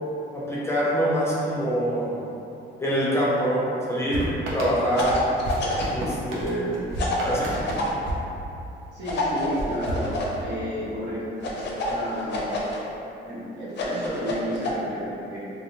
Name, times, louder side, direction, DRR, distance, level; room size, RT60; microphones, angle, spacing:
voice 1, 0.3-2.3 2.8-5.2 5.9-6.9 7.2-7.5, equal, 15° left, -7 dB, 0.5 m, -25 dB
sound 1, 4.1-9.0 9.5-10.8, right 1 dB, 90° right, 0.5 m, -32 dB
sound 2, 4.9-6.0 7.0-7.9 9.0-10.3 11.4-12.8 13.7-14.7, left 1 dB, 60° left, 0.5 m, -28 dB
voice 2, 8.9-11.5 11.8-12.6 13.2-15.5, equal, 65° right, -7 dB, 0.8 m, -32 dB
2.5 x 2.1 x 2.8 m, 2.8 s
cardioid pair, 90°, 20 cm